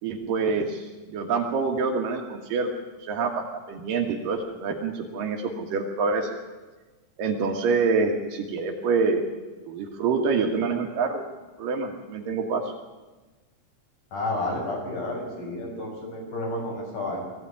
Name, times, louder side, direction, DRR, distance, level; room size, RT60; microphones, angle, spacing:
voice 1, 0.0-2.7 3.0-6.3 7.2-9.2 9.7-11.2 11.6-12.7, right 4 dB, 85° right, 2 dB, 3.2 m, -26 dB
voice 2, 14.1-17.2, left 2 dB, 70° left, -1 dB, 7.3 m, -31 dB
21.0 x 15.0 x 9.7 m, 1.2 s
omnidirectional pair, 3.8 m